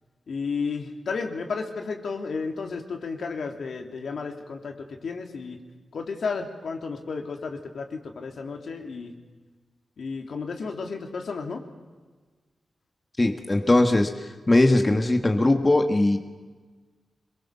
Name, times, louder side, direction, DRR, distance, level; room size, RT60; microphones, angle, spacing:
voice 1, 0.3-4.7 5.0-5.6 5.9-9.1 10.0-11.6, left 4 dB, 70° left, 3 dB, 3.0 m, -32 dB
voice 2, 13.2-16.2, left 2 dB, 20° left, 5 dB, 1.6 m, -20 dB
26.5 x 22.5 x 7.0 m, 1.4 s
wide cardioid pair, 125°, 0 cm